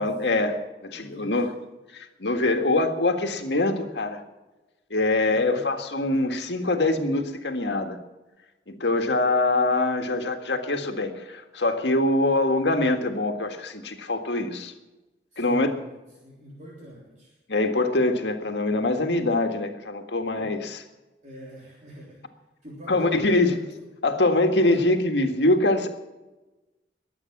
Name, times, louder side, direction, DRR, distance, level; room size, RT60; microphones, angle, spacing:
voice 1, 0.0-1.5 1.9-4.2 4.9-8.0 8.7-14.7 15.4-15.7 17.5-20.8 22.9-23.6 24.0-25.9, left 2 dB, 80° left, 5 dB, 1.8 m, -24 dB
voice 2, 1.0-1.6 5.3-5.7 15.3-17.4 20.4-20.6 21.2-22.2 22.6-23.9 24.6-24.9, equal, 45° right, -4 dB, 3.6 m, -43 dB
22.0 x 8.6 x 6.0 m, 1.1 s
head